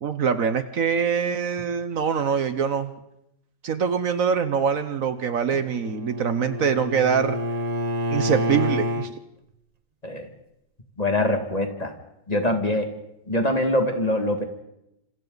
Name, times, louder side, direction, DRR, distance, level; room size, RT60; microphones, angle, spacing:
voice 1, 0.0-2.9 3.6-7.4 8.1-9.1, right 6 dB, 55° right, 11 dB, 1.2 m, -24 dB
Bowed string instrument, 5.3-9.1, equal, 30° right, 0.8 m, -28 dB
voice 2, 11.0-11.9 12.3-12.9 13.3-14.4, left 1 dB, 20° left, 5 dB, 2.0 m, -23 dB
27.0 x 27.0 x 4.0 m, 0.83 s
omnidirectional pair, 1.9 m